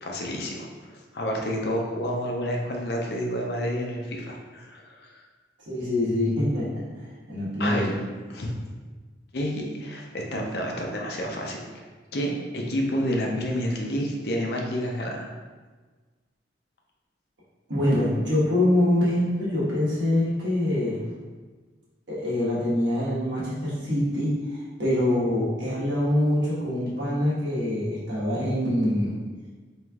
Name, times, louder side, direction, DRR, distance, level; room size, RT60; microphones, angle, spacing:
voice 1, 0.0-5.1 7.6-7.9 8.3-8.5 9.3-11.8 12.1-15.3, equal, 55° left, 0 dB, 0.6 m, -29 dB
voice 2, 5.6-6.8 7.3-8.0 17.7-21.0 22.1-29.2, left 1 dB, 75° right, -8 dB, 1.3 m, -24 dB
4.6 x 3.2 x 2.3 m, 1.4 s
head